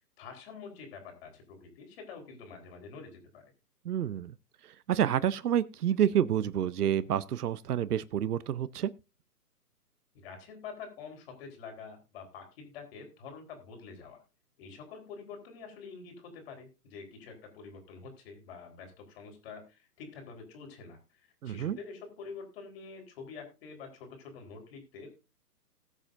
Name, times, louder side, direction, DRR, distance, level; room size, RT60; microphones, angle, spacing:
voice 1, 0.2-3.4 10.1-14.2 14.6-25.1, left 5 dB, 40° left, 4.0 m, -47 dB
voice 2, 3.8-4.3 4.9-8.9 21.4-21.8, right 10 dB, 70° right, 0.8 m, -28 dB
20.0 x 7.3 x 2.6 m
hypercardioid pair, 145°, 48 cm